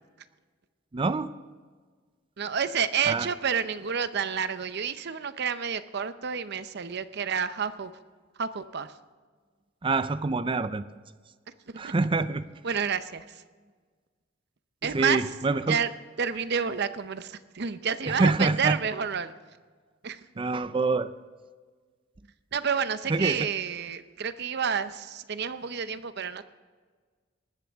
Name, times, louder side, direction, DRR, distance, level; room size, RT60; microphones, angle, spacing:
voice 1, 0.9-1.3 3.1-3.3 9.8-10.9 11.8-12.4 14.8-15.8 18.1-18.8 20.4-21.1 23.1-23.5, right 3 dB, 25° right, 14 dB, 0.4 m, -26 dB
voice 2, 2.4-7.9 8.4-8.9 11.7-11.9 12.6-13.4 14.8-15.2 15.7-15.9 16.2-19.3 20.0-20.2 22.5-26.4, right 7 dB, 60° right, 12 dB, 0.7 m, -29 dB
19.0 x 13.5 x 3.6 m, 1.5 s
head